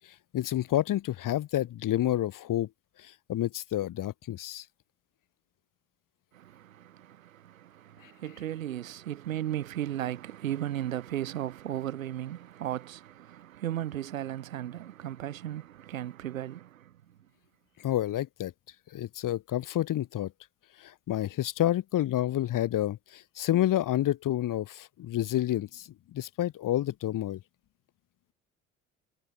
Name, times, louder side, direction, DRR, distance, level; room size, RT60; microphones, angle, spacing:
voice 1, 0.3-2.7 3.0-4.6 17.8-18.5 18.9-20.3 20.8-27.4, left 13 dB, 50° left, 6.8 m, -29 dB
voice 2, 6.3-16.9, right 12 dB, 80° right, 6.5 m, -36 dB
hypercardioid pair, 60°, 40 cm